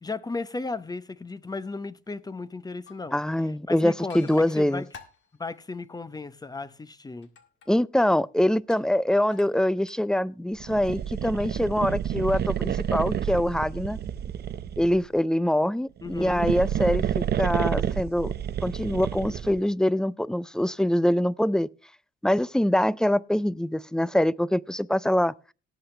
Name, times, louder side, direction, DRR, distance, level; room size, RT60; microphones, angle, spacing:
voice 1, 0.0-3.2 3.7-4.3 4.6-4.9 5.4-7.3 16.0-16.4, left 3 dB, 20° left, 0.8 m, -35 dB
sound 1, 1.2-1.3 2.0-2.1 2.7-3.0 3.4-3.5 4.1-5.7 7.2-8.1 8.6-8.9 9.3-10.1 10.4-11.5, left 6 dB, 65° left, 2.0 m, -52 dB
voice 2, 3.1-4.8 7.7-14.0 14.8-18.3 18.6-21.7 22.2-25.3, left 1 dB, 5° left, 0.4 m, -24 dB
sound 2, 10.6-15.1 16.0-19.6, right 9 dB, 55° right, 0.8 m, -29 dB
18.0 x 8.0 x 3.3 m
cardioid pair, 90°, 20 cm